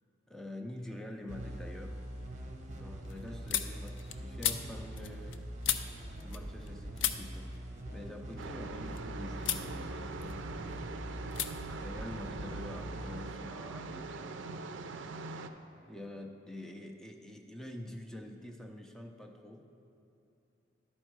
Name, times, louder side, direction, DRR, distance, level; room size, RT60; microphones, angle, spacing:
voice 1, 0.3-2.0 2.7-5.4 6.2-11.1 11.8-14.6 15.8-19.7, left 1 dB, 5° left, 2 dB, 0.4 m, -46 dB
sound 1, 0.7-1.3 1.7-6.7 7.0-9.0 9.4-9.7 10.1-10.8 11.3-11.5 11.8-12.8, left 10 dB, 75° left, 0.4 m, -38 dB
sound 2, 1.3-14.6, right 1 dB, 40° right, 0.8 m, -44 dB
sound 3, 8.4-15.5, right 3 dB, 75° right, 0.4 m, -42 dB
11.5 x 4.4 x 4.6 m, 2.8 s
head